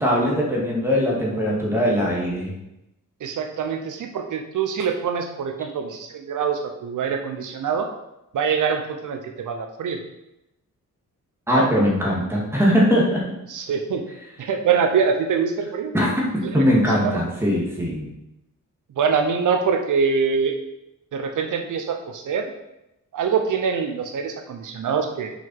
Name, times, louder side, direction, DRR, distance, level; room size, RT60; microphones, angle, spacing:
voice 1, 0.0-2.5 11.5-13.2 15.9-16.1 16.5-18.1, equal, 10° right, -4 dB, 2.1 m, -20 dB
voice 2, 3.2-7.9 8.3-10.0 11.5-11.7 13.5-14.0 14.4-15.9 16.4-17.2 19.0-20.5 21.1-22.5 23.1-25.3, right 6 dB, 75° right, 4 dB, 0.9 m, -24 dB
6.2 x 5.8 x 5.5 m, 0.89 s
wide cardioid pair, 155°, 31 cm